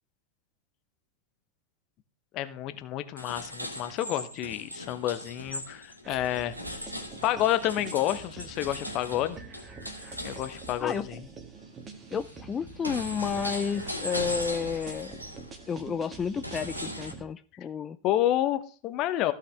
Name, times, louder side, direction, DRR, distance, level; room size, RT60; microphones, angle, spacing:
voice 1, 2.3-6.5 7.2-9.4 10.2-11.2 18.0-19.3, left 13 dB, 40° left, 11 dB, 1.0 m, -29 dB
sound 1, 3.2-11.0 11.5-17.1, equal, 90° right, 2.1 m, -39 dB
sound 2, 6.0-17.2, right 5 dB, 25° right, 1.9 m, -46 dB
voice 2, 12.1-15.1 15.7-18.0, left 6 dB, 20° left, 13 dB, 0.5 m, -31 dB
15.5 x 5.8 x 3.4 m, 0.40 s
figure-of-eight pair, 90°, 0 cm